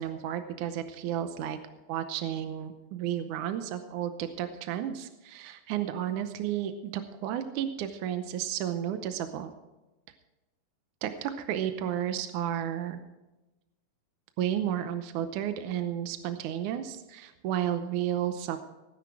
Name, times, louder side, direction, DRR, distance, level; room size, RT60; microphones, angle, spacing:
voice 1, 0.0-1.6 1.9-9.5 11.0-13.0 14.4-18.6, right 10 dB, 75° right, 8 dB, 2.0 m, -32 dB
18.0 x 10.0 x 4.7 m, 1.0 s
omnidirectional pair, 4.1 m